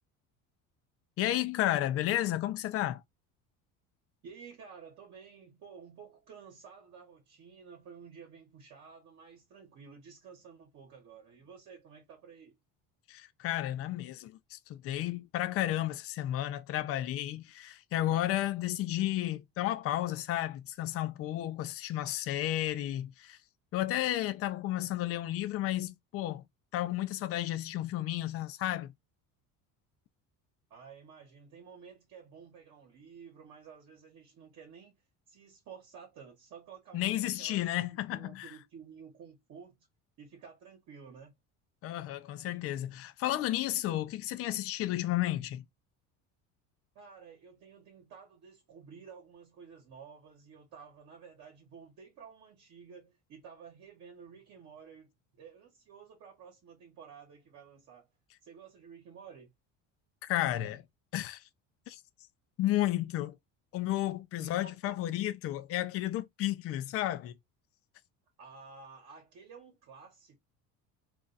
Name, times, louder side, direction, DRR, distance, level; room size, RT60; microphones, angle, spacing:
voice 1, 1.2-3.0 13.1-23.4 23.7-26.4 26.7-28.9 36.9-38.5 41.8-45.6 60.2-60.8 61.1-61.4 61.9-62.0 62.6-63.4 63.7-67.4, left 14 dB, 45° left, 0.4 m, -32 dB
voice 2, 4.2-12.6 30.7-35.0 35.3-39.8 40.2-41.3 46.9-55.1 55.3-58.1 58.4-59.5 64.4-65.0 68.4-70.4, right 6 dB, 50° right, 1.1 m, -52 dB
2.5 x 2.3 x 3.8 m
cardioid pair, 135°, 34 cm